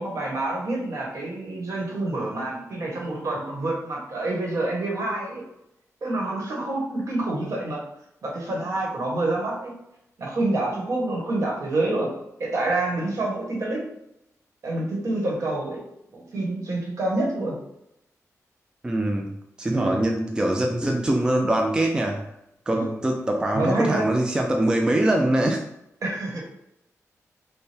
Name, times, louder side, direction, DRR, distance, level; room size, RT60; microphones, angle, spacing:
voice 1, 0.0-5.5 6.0-7.8 8.2-9.7 10.2-12.1 12.4-13.8 14.6-15.8 16.1-17.6 19.7-20.0 22.7-23.0 23.5-24.0 26.0-26.5, right 2 dB, 65° right, -2 dB, 1.2 m, -27 dB
voice 2, 18.8-19.3 19.6-22.2 22.7-25.6, right 1 dB, 15° right, 2 dB, 0.3 m, -23 dB
4.3 x 2.2 x 3.3 m, 0.82 s
wide cardioid pair, 130°, 6 cm